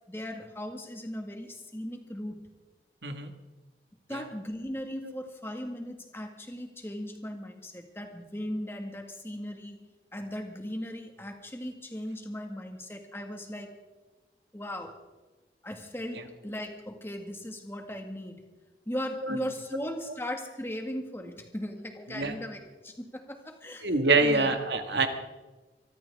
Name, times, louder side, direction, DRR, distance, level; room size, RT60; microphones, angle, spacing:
voice 1, 0.1-2.5 4.1-9.9 10.1-13.7 14.5-14.9 15.6-18.4 18.9-24.5 24.9-25.0, equal, 15° left, 4 dB, 1.8 m, -38 dB
voice 2, 23.8-25.1, right 3 dB, 80° right, 6 dB, 1.8 m, -26 dB
24.5 x 13.5 x 3.6 m, 1.2 s
head